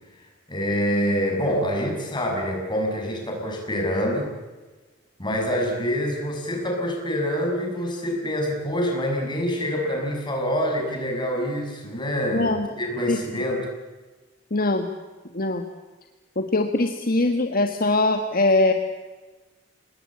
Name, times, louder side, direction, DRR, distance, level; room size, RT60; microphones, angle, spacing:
voice 1, 0.5-4.3 5.2-12.5 12.8-13.7, equal, 25° left, 1 dB, 6.7 m, -26 dB
voice 2, 12.3-12.7 13.1-13.4 14.5-14.9 15.3-15.6 16.4-18.7, left 2 dB, 50° left, 5 dB, 1.5 m, -22 dB
28.5 x 19.0 x 8.8 m, 1.3 s
head